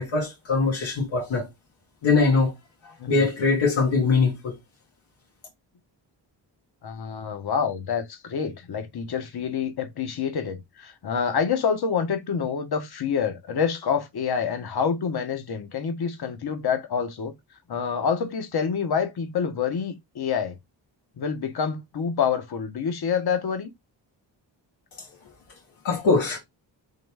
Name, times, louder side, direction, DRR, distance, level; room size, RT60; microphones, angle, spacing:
voice 1, 0.0-1.5 2.0-2.5 3.1-4.5 25.8-26.4, left 4 dB, 85° left, 1.6 m, -22 dB
voice 2, 6.8-17.3 17.7-20.6 21.2-23.7, left 6 dB, 55° left, 1.0 m, -27 dB
3.9 x 3.0 x 3.4 m
cardioid pair, 60°, 47 cm